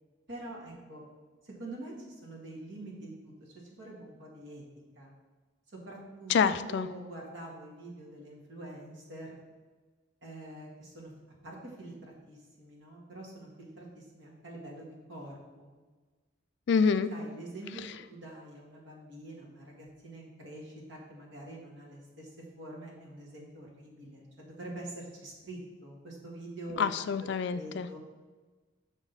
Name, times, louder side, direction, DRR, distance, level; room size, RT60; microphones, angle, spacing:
voice 1, 0.3-1.0 1.4-4.6 4.9-5.1 5.7-6.4 6.7-9.4 10.2-11.1 11.4-15.7 17.1-17.8 18.1-26.8 27.2-28.0, right 1 dB, 70° right, -3 dB, 1.9 m, -45 dB
voice 2, 6.3-6.9 16.7-17.1 26.8-27.9, left 6 dB, 60° left, 12 dB, 0.3 m, -26 dB
6.3 x 6.0 x 4.0 m, 1.3 s
head